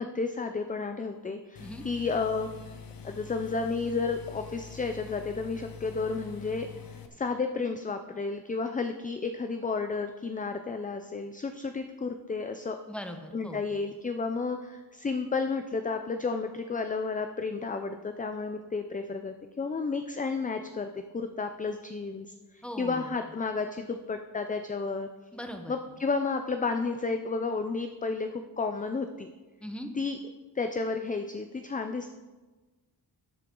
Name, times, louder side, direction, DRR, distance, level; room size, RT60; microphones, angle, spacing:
voice 1, 0.0-2.5 3.0-6.7 7.1-12.8 13.3-25.1 25.7-29.3 29.9-30.2 30.6-32.1, left 4 dB, 20° left, 7 dB, 0.4 m, -32 dB
sound 1, 1.6-7.1, left 6 dB, 55° left, 0.9 m, -45 dB
voice 2, 12.9-13.6 22.6-23.1 25.3-25.7 29.6-29.9, equal, 5° left, 5 dB, 0.9 m, -39 dB
13.0 x 7.8 x 3.7 m, 1.3 s
wide cardioid pair, 140°, 42 cm